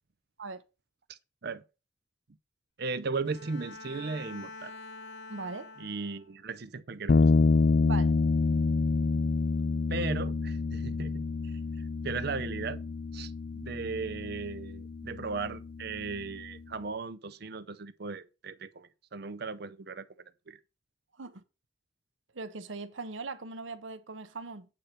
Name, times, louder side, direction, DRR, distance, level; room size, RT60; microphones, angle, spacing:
voice 1, 1.1-1.6 2.8-4.7 5.8-7.3 9.9-11.5 12.0-12.8 13.1-20.1 20.5-20.6, right 4 dB, 55° right, 0.6 m, -37 dB
Bowed string instrument, 3.2-6.4, left 3 dB, 65° left, 1.5 m, -46 dB
voice 2, 5.3-5.7 7.8-8.1 21.2-21.4 22.3-24.7, right 3 dB, 75° right, 0.9 m, -39 dB
sound 1, 7.1-16.6, left 3 dB, 50° left, 0.4 m, -28 dB
8.3 x 4.4 x 6.5 m
head